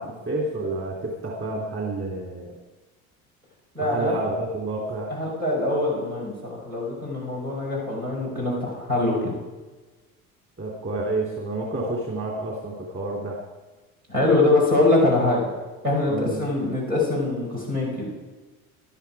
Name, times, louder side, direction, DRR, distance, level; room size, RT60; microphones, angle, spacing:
voice 1, 0.0-2.5 3.8-5.3 10.6-13.4 16.1-16.4, right 2 dB, 30° right, -1 dB, 3.2 m, -29 dB
voice 2, 3.7-4.1 5.1-9.3 14.1-15.4 15.8-18.1, left 2 dB, 85° right, -4 dB, 5.5 m, -23 dB
19.5 x 12.0 x 4.9 m, 1.2 s
figure-of-eight pair, 60°, 42 cm